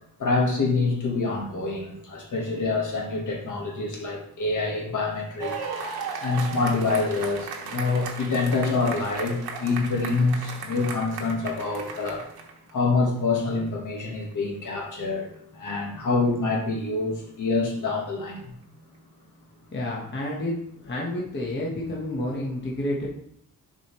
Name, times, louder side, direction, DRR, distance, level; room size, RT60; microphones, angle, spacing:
voice 1, 0.2-5.6 6.2-12.2 12.7-18.4, left 3 dB, 55° left, 0 dB, 1.4 m, -26 dB
sound 1, 5.4-12.7 13.7-13.8, right 5 dB, 80° right, 1.1 m, -36 dB
voice 2, 19.7-23.1, left 1 dB, 30° left, -4 dB, 1.1 m, -30 dB
6.8 x 4.9 x 3.0 m, 0.69 s
wide cardioid pair, 180°, 37 cm